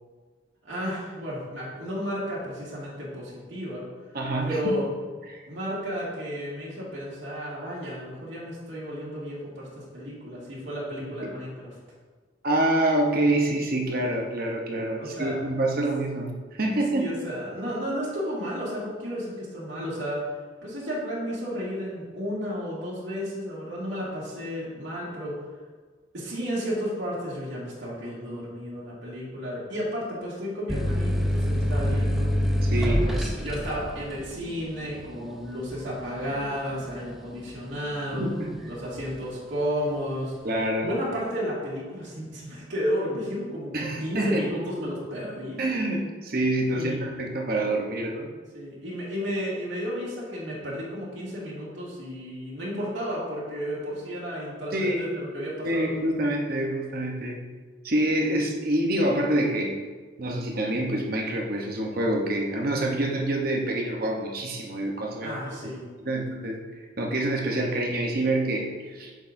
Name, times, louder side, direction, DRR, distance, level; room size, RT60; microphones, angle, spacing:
voice 1, 0.6-3.8 4.4-4.8 5.5-11.8 15.0-15.4 16.7-20.3 20.6-25.4 26.1-32.3 32.8-38.3 38.7-40.3 40.8-45.6 46.7-47.1 48.5-56.0 65.2-65.9, equal, 80° right, -7 dB, 2.1 m, -32 dB
voice 2, 4.1-4.6 5.3-5.4 11.2-11.3 12.4-17.1 32.6-33.1 38.1-38.6 40.4-40.9 43.7-44.5 45.6-48.3 54.7-55.1 55.6-57.4 57.8-59.8 60.2-65.4 66.0-66.6 67.0-69.1, right 1 dB, 50° right, 0 dB, 0.9 m, -26 dB
sound 1, 30.7-38.0 38.4-39.1, equal, ahead, 0.6 m, -27 dB
8.4 x 6.3 x 2.6 m, 1.4 s
head